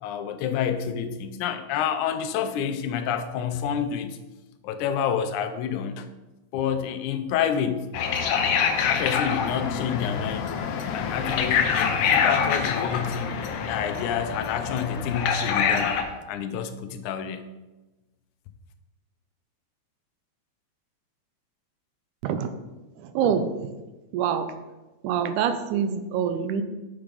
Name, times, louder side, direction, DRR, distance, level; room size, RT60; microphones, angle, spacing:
voice 1, 0.0-4.2 4.6-6.1 6.5-7.9 8.8-10.6 10.9-15.9 16.3-17.4, left 8 dB, 85° left, 9 dB, 2.1 m, -28 dB
sound 1, 7.9-16.0, left 6 dB, 70° left, 1.7 m, -25 dB
voice 2, 23.0-23.5 24.1-24.5 25.0-26.6, right 8 dB, 90° right, 10 dB, 2.2 m, -25 dB
6.9 x 5.9 x 5.1 m, 1.1 s
omnidirectional pair, 3.4 m